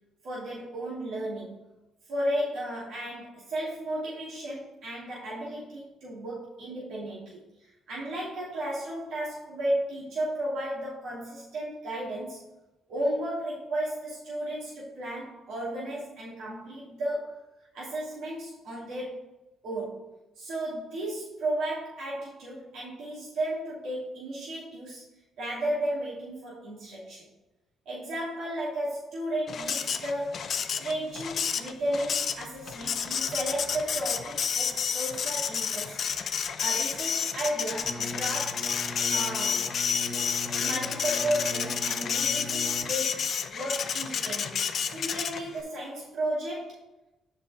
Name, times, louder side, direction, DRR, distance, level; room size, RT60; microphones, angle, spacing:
voice 1, 0.2-1.6 2.1-12.4 12.9-17.5 17.7-19.2 19.6-20.1 20.4-25.0 25.4-27.3 27.9-30.5 30.8-36.0 36.3-38.7 39.1-39.6 40.6-46.8, right 1 dB, 75° right, -7 dB, 2.6 m, -34 dB
Printer, 29.5-45.6, left 7 dB, 55° left, 0.5 m, -30 dB
sound 1, 37.8-42.8, left 1 dB, 20° left, 2.1 m, -39 dB
7.1 x 5.6 x 3.6 m, 0.97 s
cardioid pair, 90°, 0 cm